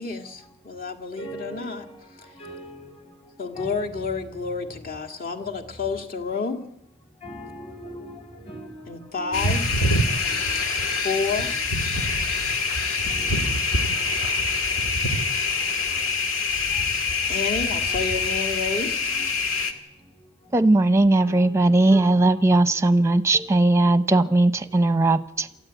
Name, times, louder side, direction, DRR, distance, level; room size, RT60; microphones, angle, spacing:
voice 1, 0.0-1.8 2.2-2.3 3.4-6.7 8.9-9.6 11.0-11.5 17.3-19.0, left 4 dB, 45° left, 2.0 m, -29 dB
voice 2, 1.2-1.8 2.4-2.9 3.6-3.7 4.1-4.3 7.2-8.2 8.5-9.4 10.2-10.4 13.1-13.5 17.9-18.0 21.2-21.6, right 1 dB, 25° left, 4.8 m, -40 dB
sound 1, 9.3-19.7, left 3 dB, 75° left, 2.0 m, -25 dB
voice 3, 20.5-25.5, right 2 dB, 15° right, 0.8 m, -18 dB
27.0 x 14.0 x 9.2 m
head